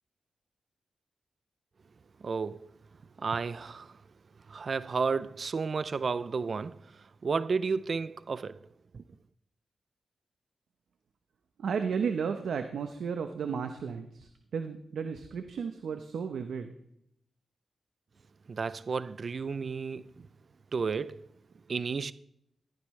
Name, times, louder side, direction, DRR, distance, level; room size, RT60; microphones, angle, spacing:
voice 1, 2.2-2.7 3.2-4.0 4.5-8.7 8.9-9.0 18.5-20.3 20.7-21.3 21.7-22.1, right 5 dB, 55° right, 0.4 m, -32 dB
voice 2, 11.6-16.7, right 6 dB, 80° right, 0.9 m, -33 dB
14.5 x 14.5 x 3.2 m
cardioid pair, 80°, 0 cm